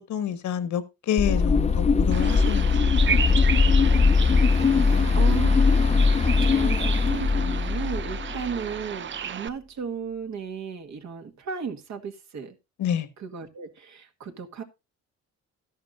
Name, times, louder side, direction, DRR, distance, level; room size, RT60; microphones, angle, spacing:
voice 1, 0.1-3.0 3.9-4.1 4.8-5.1 12.8-13.1, left 9 dB, 75° left, 1.3 m, -29 dB
sound 1, 1.2-8.6, left 4 dB, 20° left, 0.6 m, -20 dB
Bird vocalization bird call bird song, 2.1-9.5, right 7 dB, 40° right, 0.6 m, -33 dB
voice 2, 4.8-5.6 6.4-12.5 13.2-14.6, right 6 dB, 65° right, 1.7 m, -35 dB
12.5 x 11.0 x 2.5 m
cardioid pair, 90°, 30 cm